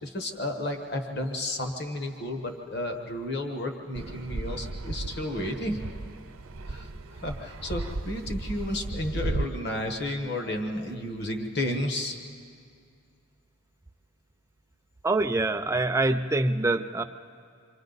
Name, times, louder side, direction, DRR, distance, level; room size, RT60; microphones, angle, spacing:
voice 1, 0.0-5.8 6.7-12.2, left 1 dB, 50° left, 4 dB, 1.4 m, -32 dB
Fixed-wing aircraft airplane, 3.9-9.4, right 2 dB, 80° right, 0.8 m, -35 dB
voice 2, 15.0-17.0, right 2 dB, 15° right, 8 dB, 0.5 m, -25 dB
28.0 x 24.0 x 4.0 m, 2.3 s
head